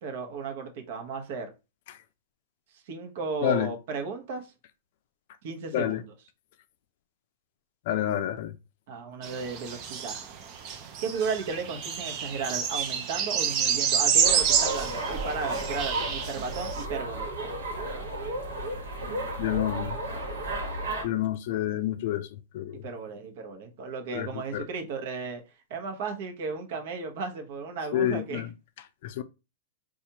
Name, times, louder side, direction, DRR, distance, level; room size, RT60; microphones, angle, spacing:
voice 1, 0.0-1.5 2.7-4.5 5.4-6.1 8.9-10.3 11.0-17.5 22.8-25.4 25.7-28.4, right 5 dB, 60° right, 0.9 m, -35 dB
voice 2, 3.4-3.7 5.7-6.0 7.9-8.5 19.4-20.0 21.0-22.3 22.5-22.8 24.1-24.6 27.9-28.5 29.0-29.2, left 12 dB, 55° left, 0.4 m, -28 dB
sound 1, 9.2-16.8, right 7 dB, 40° right, 0.6 m, -28 dB
sound 2, 14.2-21.1, right 1 dB, 75° right, 1.3 m, -33 dB
4.2 x 2.4 x 2.8 m
hypercardioid pair, 130°, 0 cm